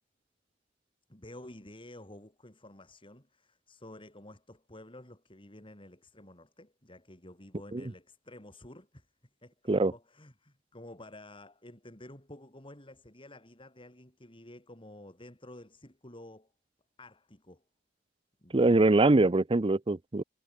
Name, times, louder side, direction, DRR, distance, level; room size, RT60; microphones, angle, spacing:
voice 1, 1.1-9.1 9.4-16.5 17.0-17.6 18.4-18.8, left 1 dB, 25° left, 5.6 m, -51 dB
voice 2, 18.5-20.2, right 2 dB, 30° right, 0.6 m, -23 dB
head